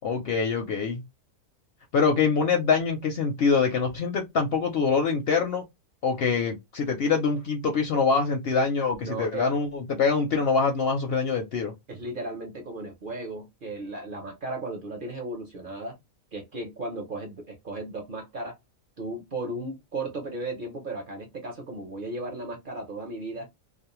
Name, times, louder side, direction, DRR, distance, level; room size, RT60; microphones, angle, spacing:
voice 1, 0.0-1.0 1.9-5.6 6.0-11.7, left 5 dB, 60° left, 0.7 m, -24 dB
voice 2, 9.0-9.5 11.9-16.0 16.3-18.6 19.0-23.5, right 2 dB, 50° right, 0.7 m, -35 dB
2.4 x 2.0 x 2.9 m
omnidirectional pair, 1.4 m